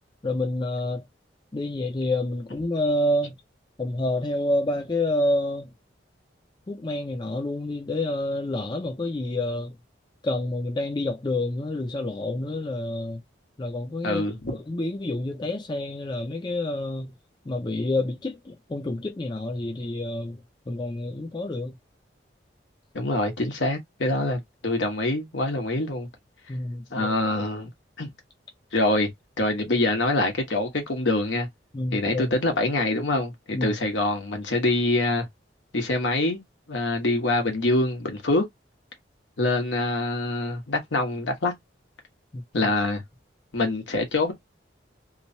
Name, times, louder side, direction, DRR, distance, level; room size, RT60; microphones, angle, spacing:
voice 1, 0.2-1.0 1.5-3.4 3.8-5.7 6.7-9.7 10.2-13.2 13.6-17.1 17.5-20.4 20.7-21.8 26.5-27.1 31.7-32.3 33.5-33.7 42.3-42.7, left 1 dB, 25° left, 0.4 m, -28 dB
voice 2, 14.0-14.6 22.9-26.1 26.9-27.7 28.0-28.1 28.7-29.1 29.4-31.5 31.9-35.3 35.7-36.4 36.7-38.4 39.4-41.5 42.5-43.0 43.5-44.3, left 2 dB, 80° left, 1.2 m, -25 dB
3.1 x 2.1 x 2.6 m
head